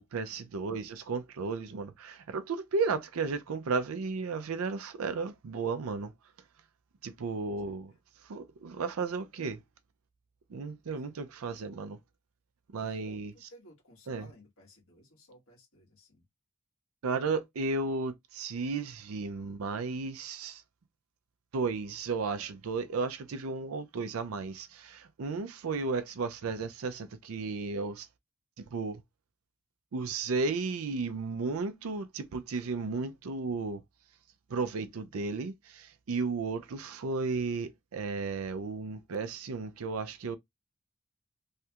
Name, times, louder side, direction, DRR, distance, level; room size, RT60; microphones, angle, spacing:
voice 1, 0.0-6.1 7.0-9.6 10.5-12.0 12.7-13.3 14.1-14.3 17.0-20.6 21.5-28.1 28.7-29.0 29.9-33.8 34.5-40.4, right 4 dB, 85° right, 0.5 m, -34 dB
voice 2, 12.8-13.2 13.5-16.2, equal, 80° left, 1.5 m, -57 dB
3.1 x 2.3 x 2.8 m
head